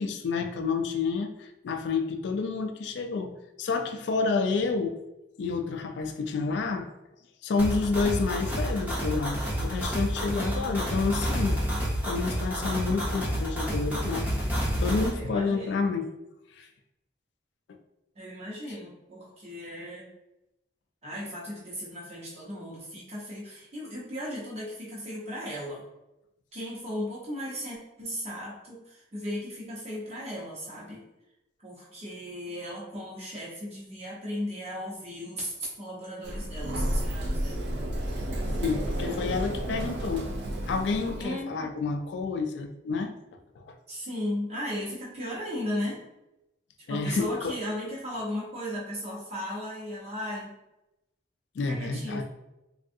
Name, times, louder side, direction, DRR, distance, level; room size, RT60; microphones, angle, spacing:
voice 1, 0.0-5.0 5.4-6.9 7.4-11.6 12.0-14.3 14.6-16.1 16.6-16.7 38.6-40.3 40.7-43.1 43.6-43.8 46.9-47.5 51.6-52.2, left 4 dB, 65° left, 6 dB, 0.3 m, -29 dB
sound 1, 7.6-15.1, equal, 10° right, 0.6 m, -29 dB
voice 2, 10.3-11.0 15.1-15.8 18.1-20.1 21.0-25.9 26.5-31.0 31.6-37.7 41.2-41.7 43.9-46.0 46.9-50.5 51.6-52.2, equal, 35° right, -5 dB, 0.9 m, -36 dB
Sliding door, 36.2-41.3, right 1 dB, 65° right, 0.4 m, -31 dB
3.4 x 2.3 x 2.6 m, 0.93 s
head